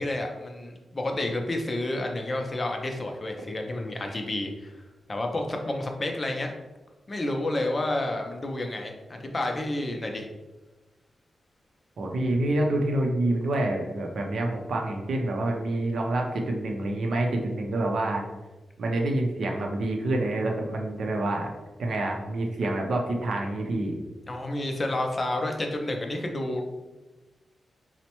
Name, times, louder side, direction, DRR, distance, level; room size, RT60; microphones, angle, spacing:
voice 1, 0.0-4.7 5.1-6.5 7.1-10.3 24.3-26.6, left 1 dB, 30° left, 3 dB, 0.4 m, -30 dB
voice 2, 12.0-18.3 18.8-21.5 21.8-24.0, right 1 dB, 70° right, 2 dB, 0.5 m, -27 dB
4.2 x 2.1 x 2.9 m, 1.1 s
wide cardioid pair, 145°, 0 cm